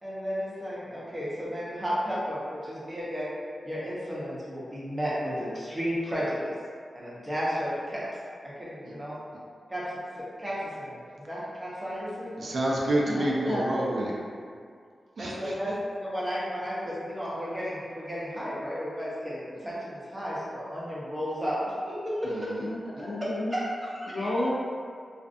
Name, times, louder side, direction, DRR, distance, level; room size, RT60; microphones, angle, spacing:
voice 1, 0.0-3.3 3.6-6.5 6.9-8.0 8.4-9.1 9.7-9.8 10.4-11.0 11.3-12.5 15.2-15.8 16.0-22.5 23.5-24.3, equal, 15° right, -8 dB, 0.7 m, -33 dB
voice 2, 12.4-14.1 15.2-15.6 22.2-22.6, right 1 dB, 70° right, -4 dB, 0.4 m, -28 dB
voice 3, 13.1-13.7 22.6-23.5 24.1-24.5, left 1 dB, 65° left, -6 dB, 0.6 m, -31 dB
2.4 x 2.3 x 2.5 m, 2.2 s
wide cardioid pair, 115°, 0 cm